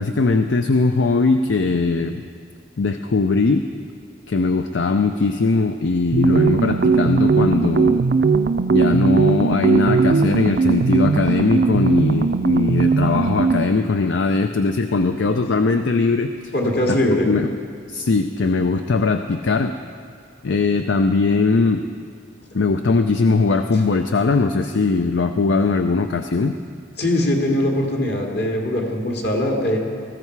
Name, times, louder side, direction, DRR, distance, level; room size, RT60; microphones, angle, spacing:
voice 1, 0.0-2.2 2.8-3.7 4.3-8.0 8.7-16.5 17.3-17.5 17.9-19.7 20.4-21.8 22.5-26.6, left 3 dB, 75° left, 7 dB, 0.5 m, -20 dB
sound 1, 6.1-13.8, right 4 dB, 55° right, 0.4 m, -18 dB
voice 2, 16.5-17.4 27.0-29.8, left 1 dB, 55° left, 0 dB, 2.3 m, -21 dB
19.5 x 14.5 x 4.7 m, 2.2 s
head